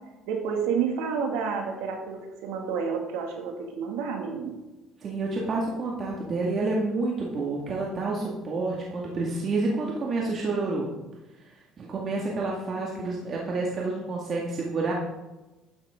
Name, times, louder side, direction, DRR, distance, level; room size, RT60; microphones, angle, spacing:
voice 1, 0.3-4.6, right 6 dB, 90° right, 3 dB, 2.3 m, -30 dB
voice 2, 5.0-10.9 11.8-14.9, right 3 dB, 40° right, -3 dB, 2.1 m, -29 dB
13.0 x 10.0 x 3.8 m, 1.1 s
cardioid pair, 115°, 0 cm